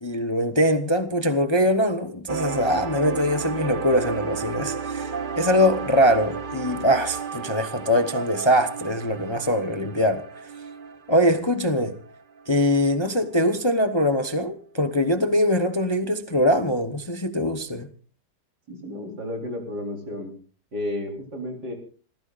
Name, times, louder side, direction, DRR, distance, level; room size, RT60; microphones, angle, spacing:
voice 1, 0.0-10.2 11.1-11.9 12.5-17.9, equal, 20° left, 0.9 m, -22 dB
sound 1, 2.3-12.7 13.2-13.3 13.7-13.8, right 5 dB, 35° right, 1.0 m, -33 dB
voice 2, 18.7-20.3 20.7-21.7, left 1 dB, 70° right, 4.9 m, -32 dB
28.0 x 15.5 x 2.5 m
omnidirectional pair, 1.8 m